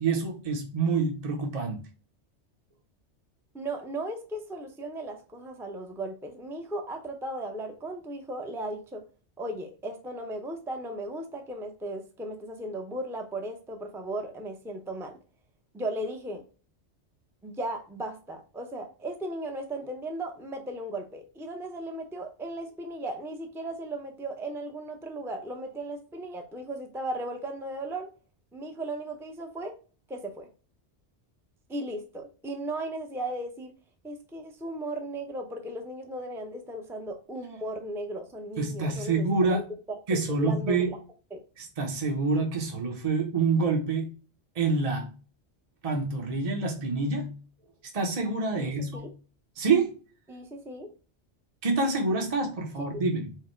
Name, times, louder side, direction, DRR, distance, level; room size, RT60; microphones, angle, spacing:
voice 1, 0.0-1.8 38.6-39.7 40.1-40.9 41.6-44.1 44.6-45.1 45.8-47.3 47.9-49.1 49.6-49.9 51.6-53.3, right 3 dB, 35° right, 0.9 m, -27 dB
voice 2, 3.5-9.0 9.4-15.2 15.7-16.4 17.4-28.1 28.5-29.8 30.1-30.5 31.7-33.7 34.0-39.6 39.9-41.0 41.3-41.4 48.6-49.1 50.3-50.9 52.8-52.9, right 1 dB, 5° right, 0.5 m, -36 dB
4.8 x 2.2 x 4.5 m
omnidirectional pair, 1.2 m